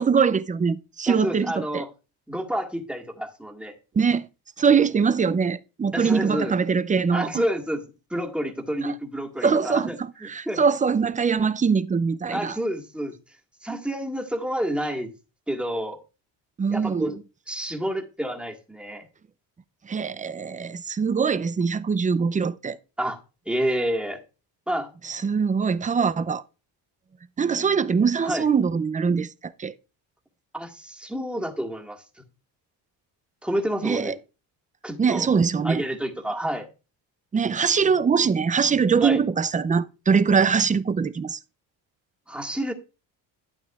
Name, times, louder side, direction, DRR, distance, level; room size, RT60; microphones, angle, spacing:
voice 1, 0.0-1.8 4.0-4.3 4.6-7.3 8.8-8.9 9.4-12.6 16.6-17.1 19.9-22.8 25.0-26.4 27.4-29.7 33.8-34.1 35.0-35.8 37.3-41.4, right 6 dB, 20° right, 0.4 m, -22 dB
voice 2, 1.1-1.9 2.3-3.7 5.9-6.5 7.1-7.8 8.1-10.6 12.3-13.1 13.6-15.1 15.5-16.0 16.7-17.2 17.5-19.1 23.0-23.2 23.4-24.2 24.7-24.9 28.2-28.5 30.5-32.0 33.4-34.2 34.8-35.3 35.6-36.7 39.0-39.2 42.3-42.7, equal, ahead, 1.7 m, -29 dB
11.5 x 9.0 x 2.4 m
cardioid pair, 85°, 46 cm